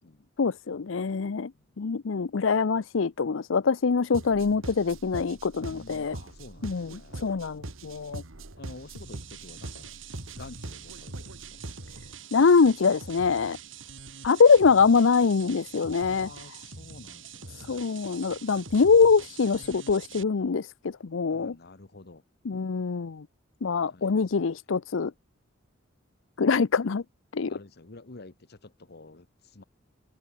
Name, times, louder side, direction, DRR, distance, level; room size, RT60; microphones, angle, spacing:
voice 1, 0.4-1.5 1.8-6.2 6.6-8.2 12.3-13.6 14.2-16.3 17.6-21.6 22.4-23.2 23.6-25.1 26.4-27.0 27.3-27.5, left 5 dB, 70° left, 0.6 m, -24 dB
sound 1, 4.1-12.1, right 2 dB, 90° right, 2.1 m, -42 dB
voice 2, 5.7-7.3 8.6-9.9 10.3-11.3 16.0-17.7 21.3-22.2 23.9-24.2 27.5-29.3 29.5-29.6, left 3 dB, 55° left, 1.2 m, -48 dB
sound 2, 8.9-20.2, right 5 dB, 70° right, 7.8 m, -45 dB
head